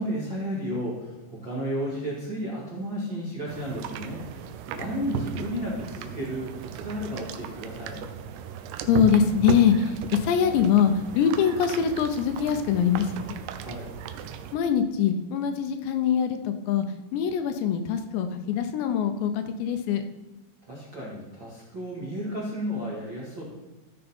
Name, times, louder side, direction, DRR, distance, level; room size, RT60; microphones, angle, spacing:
voice 1, 0.0-8.0 13.6-13.9 20.7-23.4, equal, 40° right, -7 dB, 1.8 m, -33 dB
sound 1, 3.5-14.6, right 8 dB, 80° right, 2.4 m, -36 dB
voice 2, 8.9-13.4 14.5-16.9 17.1-20.0, left 7 dB, 80° left, 7 dB, 2.9 m, -23 dB
14.5 x 6.6 x 4.3 m, 1.2 s
omnidirectional pair, 5.2 m